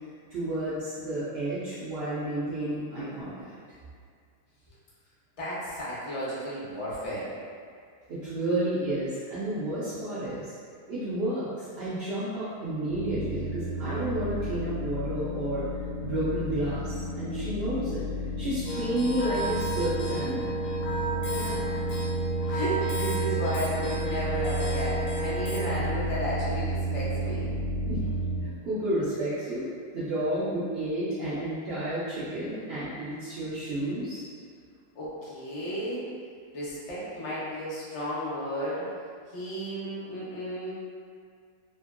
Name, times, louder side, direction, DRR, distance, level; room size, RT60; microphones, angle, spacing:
voice 1, 0.3-3.5 8.1-10.4 10.9-15.6 16.0-18.0 18.4-20.5 27.9-28.0 28.4-34.2, right 1 dB, 80° right, -10 dB, 0.5 m, -31 dB
voice 2, 5.4-7.3 21.2-22.0 22.4-27.5 34.9-36.0 36.5-38.9 39.3-40.7, equal, 40° left, -9 dB, 0.4 m, -33 dB
sound 1, 12.9-28.4, right 1 dB, 65° right, 1.1 m, -32 dB
sound 2, 18.7-25.7, right 2 dB, 70° left, 1.1 m, -33 dB
2.8 x 2.6 x 2.4 m, 2.2 s
omnidirectional pair, 1.7 m